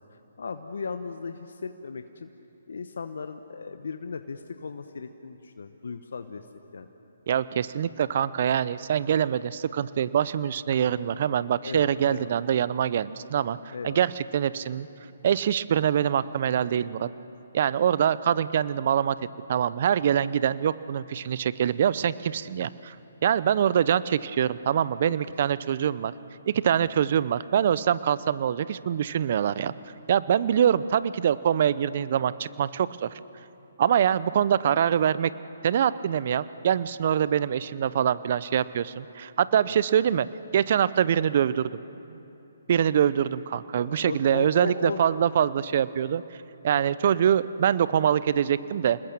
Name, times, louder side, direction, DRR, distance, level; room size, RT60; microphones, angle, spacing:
voice 1, 0.1-2.3 2.7-6.5 6.7-6.9 11.6-12.3 13.7-14.0 25.0-25.1 26.8-26.9 39.7-39.8 43.8-45.0 46.7-46.9, left 5 dB, 70° left, 8 dB, 1.0 m, -36 dB
voice 2, 7.3-14.9 15.2-17.1 17.5-19.2 19.5-23.0 23.2-26.1 26.5-29.7 30.1-33.2 33.8-35.3 35.6-40.3 40.5-41.7 42.7-46.4 46.6-49.0, right 9 dB, 50° right, 17 dB, 0.7 m, -24 dB
28.0 x 20.0 x 7.5 m, 2.9 s
figure-of-eight pair, 140°, 0 cm